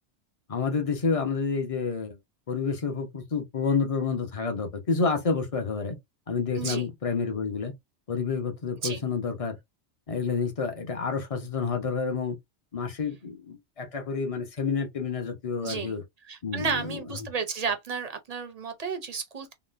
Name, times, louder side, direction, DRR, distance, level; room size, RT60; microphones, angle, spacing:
voice 1, 0.5-2.2 2.5-6.0 6.3-7.7 8.1-9.6 10.1-12.4 12.7-16.0 16.4-17.0, left 5 dB, 40° left, 0.6 m, -29 dB
voice 2, 6.6-6.9 8.8-9.0 15.6-15.9 16.2-19.5, right 5 dB, 45° right, 0.5 m, -32 dB
3.8 x 2.1 x 2.4 m
omnidirectional pair, 1.2 m